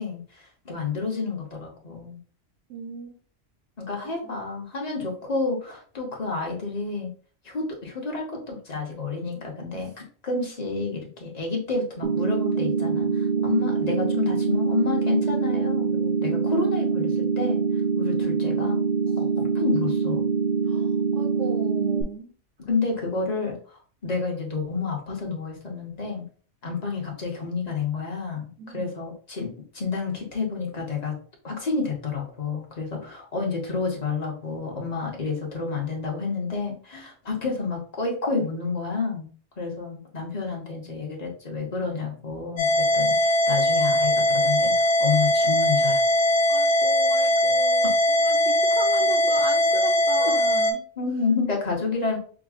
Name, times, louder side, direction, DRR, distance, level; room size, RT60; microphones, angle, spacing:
voice 1, 0.0-2.2 3.8-7.1 7.4-9.9 10.2-17.6 18.0-18.8 19.2-20.3 22.7-26.3 26.6-31.2 31.4-39.3 39.6-46.0 47.8-47.9 48.9-49.0 50.2-50.3 51.0-52.2, left 4 dB, 35° left, 0 dB, 1.1 m, -30 dB
voice 2, 2.7-3.2 4.0-4.4 9.7-9.9 13.4-13.8 20.7-22.3 28.6-28.9 46.5-50.8, right 5 dB, 75° right, 1 dB, 1.0 m, -37 dB
sound 1, 12.0-22.0, right 5 dB, 60° right, 0.6 m, -24 dB
sound 2, 42.6-50.7, left 1 dB, 70° left, 1.1 m, -21 dB
6.1 x 2.2 x 2.4 m, 0.42 s
omnidirectional pair, 1.3 m